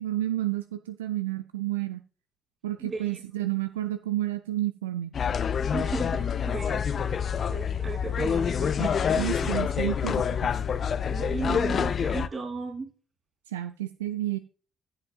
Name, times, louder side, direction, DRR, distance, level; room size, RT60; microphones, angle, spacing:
voice 1, 0.0-2.0 2.6-5.1 8.8-10.5 13.5-14.4, right 14 dB, 75° right, 11 dB, 0.4 m, -31 dB
voice 2, 2.8-3.2 5.7-9.5 11.1-12.9, right 4 dB, 30° right, 1 dB, 6.0 m, -36 dB
sound 1, 5.1-12.3, left 7 dB, 45° left, 0.6 m, -27 dB
15.5 x 7.8 x 2.3 m, 0.39 s
figure-of-eight pair, 45°, 0 cm